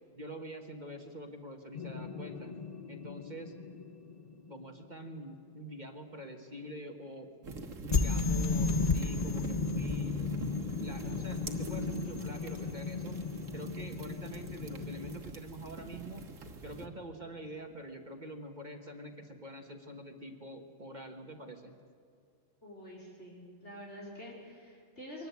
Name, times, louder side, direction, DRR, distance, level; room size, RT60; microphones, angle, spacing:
voice 1, 0.2-2.5 2.9-3.5 4.5-7.3 7.8-10.3 10.8-13.2 13.5-16.2 16.6-21.8, right 1 dB, 35° right, 4 dB, 1.5 m, -45 dB
sound 1, 1.7-4.8 7.9-15.2, left 4 dB, 35° left, 0.9 m, -34 dB
sound 2, 7.4-16.9, right 2 dB, 70° right, 1.8 m, -44 dB
voice 2, 22.6-25.3, equal, 55° left, -3 dB, 4.7 m, -47 dB
23.0 x 19.5 x 8.3 m, 2.3 s
omnidirectional pair, 1.4 m